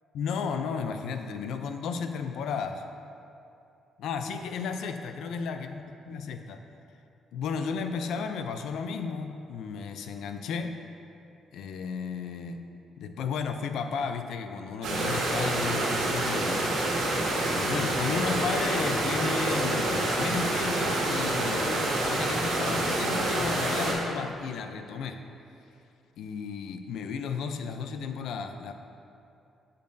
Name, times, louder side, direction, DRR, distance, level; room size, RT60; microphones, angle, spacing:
voice 1, 0.1-2.8 4.0-6.6 7.3-10.8 11.5-12.7 13.0-16.7 17.5-25.2 26.2-28.7, left 5 dB, 80° left, 7 dB, 0.4 m, -33 dB
sound 1, 14.8-23.9, right 1 dB, 85° right, 1.7 m, -27 dB
8.2 x 6.8 x 2.7 m, 2.6 s
cardioid pair, 90°, 0 cm